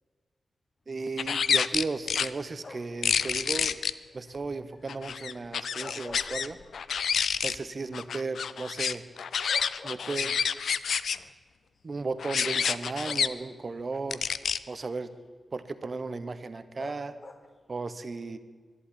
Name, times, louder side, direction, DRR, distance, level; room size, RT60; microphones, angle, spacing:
voice 1, 0.9-3.8 4.1-6.6 7.4-9.0 9.8-10.4 11.8-14.2 14.7-15.1 15.5-17.1 17.7-18.4, right 3 dB, 40° right, 12 dB, 1.0 m, -35 dB
sound 1, 1.2-2.3 3.0-3.9 4.9-6.5 6.7-7.6 7.9-11.2 12.2-13.3 14.1-14.6, left 7 dB, 85° left, 0.5 m, -28 dB
sound 2, 2.6-3.1 5.6-7.0 7.4-7.5 9.0-9.1 9.5-10.6 11.6-11.8 13.0-13.7 16.8-17.7, left 3 dB, 40° left, 1.3 m, -47 dB
11.5 x 11.5 x 9.9 m, 1.5 s
wide cardioid pair, 125°, 0 cm